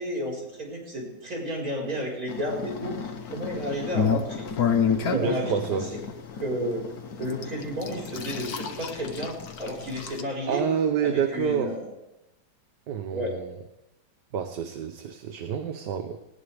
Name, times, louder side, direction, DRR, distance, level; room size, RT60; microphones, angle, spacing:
voice 1, 0.0-3.0 3.3-4.5 4.8-6.0 6.3-6.8 7.2-10.7 11.0-11.9 13.1-13.3, equal, 50° right, -2 dB, 5.4 m, -32 dB
sound 1, 2.3-10.2, left 6 dB, 60° left, 1.6 m, -30 dB
voice 2, 5.1-6.0 10.5-11.8 12.9-13.6 14.3-16.2, right 7 dB, 70° right, 7 dB, 1.5 m, -28 dB
20.0 x 18.5 x 3.5 m, 1.0 s
omnidirectional pair, 1.9 m